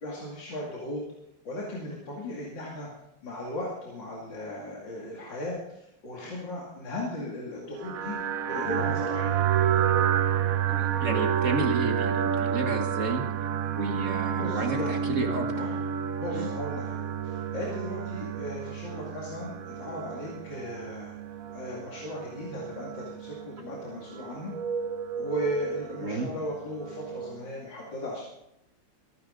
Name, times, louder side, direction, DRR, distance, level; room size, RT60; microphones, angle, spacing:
voice 1, 0.0-1.0 1.4-2.9 3.2-8.2 8.5-9.4 14.3-15.0 15.5-15.9 16.2-21.1 21.5-24.5 25.2-28.2, left 1 dB, 75° left, -4 dB, 3.1 m, -36 dB
sound 1, 7.8-27.5, right 9 dB, 60° right, 1.0 m, -30 dB
voice 2, 10.7-13.2 13.8-15.7 16.3-16.5 26.0-26.3, right 2 dB, 45° right, 4 dB, 1.6 m, -31 dB
23.5 x 9.7 x 3.8 m, 0.82 s
omnidirectional pair, 2.0 m